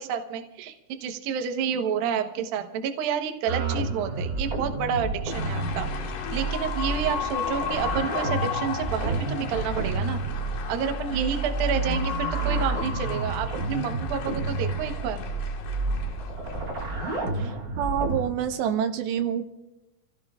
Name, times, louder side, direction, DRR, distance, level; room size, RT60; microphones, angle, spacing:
voice 1, 0.0-10.2 10.7-15.2, right 7 dB, 65° right, 5 dB, 2.7 m, -29 dB
sound 1, 3.5-18.3, right 3 dB, 35° right, 1.4 m, -30 dB
sound 2, 5.3-17.2, left 7 dB, 75° left, 4.4 m, -35 dB
voice 2, 17.4-19.5, right 9 dB, 85° right, 6 dB, 3.2 m, -27 dB
29.0 x 16.5 x 2.5 m, 0.91 s
omnidirectional pair, 5.0 m